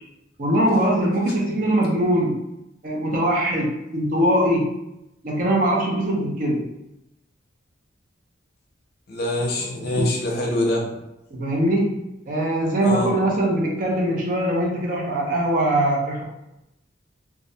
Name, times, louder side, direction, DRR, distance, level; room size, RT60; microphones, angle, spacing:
voice 1, 0.4-2.4 2.8-4.6 5.2-6.6 9.9-10.0 11.3-12.0 12.3-16.2, right 1 dB, 45° right, -1 dB, 0.5 m, -21 dB
voice 2, 9.1-10.8 12.8-13.1, left 1 dB, 55° left, -2 dB, 0.6 m, -24 dB
2.3 x 2.1 x 2.7 m, 0.87 s
head